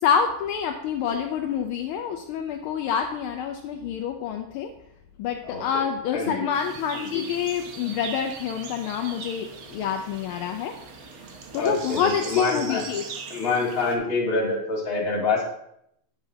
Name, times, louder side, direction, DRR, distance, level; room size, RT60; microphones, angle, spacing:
voice 1, 0.0-4.7 5.2-10.8 11.1-13.0, left 7 dB, 80° left, 4 dB, 1.4 m, -27 dB
voice 2, 6.1-6.4 11.6-12.8 13.3-15.4, left 3 dB, 40° left, -2 dB, 2.0 m, -26 dB
sound 1, 6.5-14.0, right 5 dB, 75° right, 1.8 m, -40 dB
8.8 x 7.0 x 2.8 m, 0.74 s
omnidirectional pair, 2.4 m